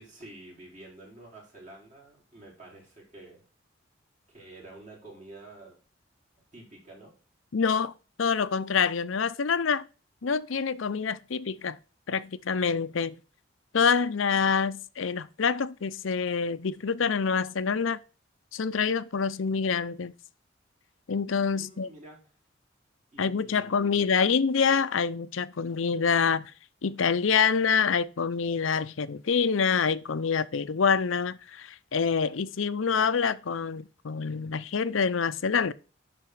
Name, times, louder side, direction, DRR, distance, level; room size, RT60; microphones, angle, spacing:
voice 1, 0.0-3.4 4.3-5.8 6.5-7.2 21.5-22.2 23.1-24.1, right 2 dB, 40° right, 4.8 m, -49 dB
voice 2, 7.5-9.9 10.2-11.8 12.1-13.2 13.7-18.0 18.5-20.1 21.1-21.9 23.2-26.5 26.8-35.7, left 6 dB, 85° left, 0.6 m, -26 dB
11.0 x 4.3 x 4.6 m
head